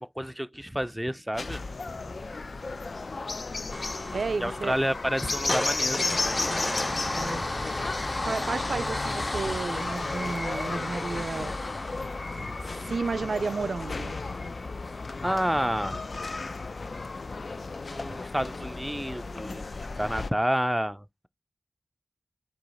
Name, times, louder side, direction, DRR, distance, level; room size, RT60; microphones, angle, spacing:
voice 1, 0.0-1.6 1.9-2.0 4.4-6.4 15.2-16.0 17.9-19.6 20.0-21.3, equal, 5° right, 0.4 m, -30 dB
sound 1, 1.3-20.3, left 3 dB, 70° left, 0.4 m, -34 dB
sound 2, 3.7-17.8 18.2-18.3 18.6-18.7, left 2 dB, 45° left, 1.4 m, -36 dB
voice 2, 4.1-4.8 7.1-7.5 8.2-11.5 12.7-14.2, right 4 dB, 85° right, 0.3 m, -32 dB
sound 3, 5.5-8.7, left 1 dB, 20° left, 1.1 m, -34 dB
4.6 x 2.8 x 4.0 m
cardioid pair, 40°, 0 cm